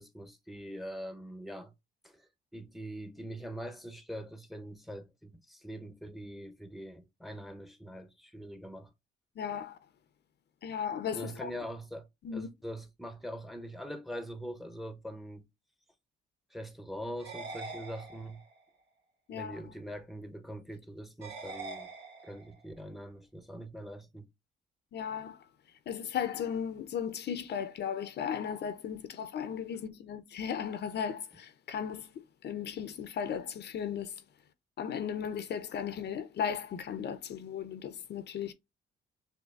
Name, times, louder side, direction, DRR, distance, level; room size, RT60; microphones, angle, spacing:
voice 1, 0.0-1.7 2.0-8.9 11.1-15.5 16.5-18.4 19.3-21.9 22.2-24.3, equal, ahead, 0.7 m, -43 dB
voice 2, 9.4-9.8 10.6-11.5 12.2-12.5 19.3-19.6 24.9-25.4 25.9-32.1 32.4-34.1 34.8-38.5, left 8 dB, 60° left, 0.6 m, -36 dB
sound 1, 17.2-18.6 21.2-22.6, right 3 dB, 70° right, 1.3 m, -44 dB
6.4 x 2.6 x 2.4 m
cardioid pair, 90°, 20 cm